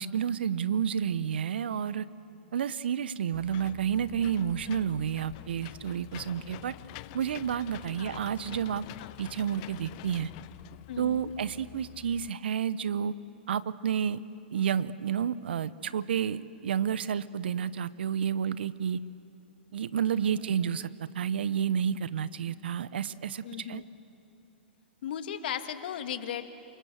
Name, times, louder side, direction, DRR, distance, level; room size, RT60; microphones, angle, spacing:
voice 1, 0.0-2.1 2.5-6.8 7.1-8.8 9.2-10.3 11.0-13.1 13.5-14.2 14.5-19.0 19.7-23.8, right 8 dB, 70° right, 17 dB, 0.9 m, -30 dB
Engine / Mechanisms, 3.3-12.3, left 17 dB, 45° left, 0.6 m, -47 dB
voice 2, 10.9-11.3 20.2-20.3 23.4-23.8 25.0-26.4, left 10 dB, 60° left, 9 dB, 1.8 m, -37 dB
28.0 x 24.5 x 7.8 m, 2.9 s
hypercardioid pair, 115°, 6 cm